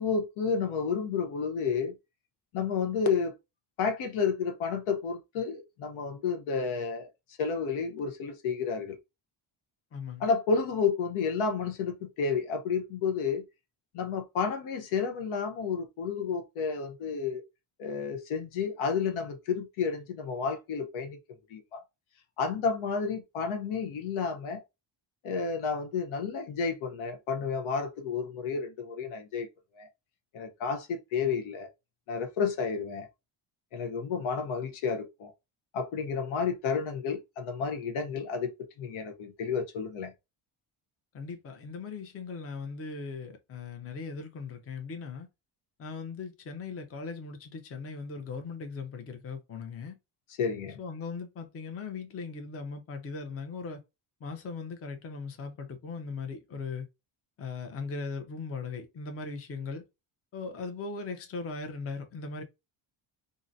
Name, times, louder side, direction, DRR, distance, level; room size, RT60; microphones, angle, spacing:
voice 1, 0.0-1.9 2.5-3.3 3.8-7.1 7.4-9.0 10.2-13.4 13.9-17.4 17.8-21.2 21.5-21.8 22.4-24.6 25.2-29.5 29.8-29.9 30.3-31.7 32.1-33.1 33.7-35.3 35.7-40.1 50.4-50.8, left 5 dB, 80° left, 0.9 m, -31 dB
voice 2, 9.9-10.3 41.1-45.3 45.8-50.0 50.8-53.8 54.2-56.9 57.4-59.8 60.3-62.4, left 4 dB, 30° left, 0.6 m, -39 dB
3.7 x 2.0 x 2.6 m
cardioid pair, 135°, 48 cm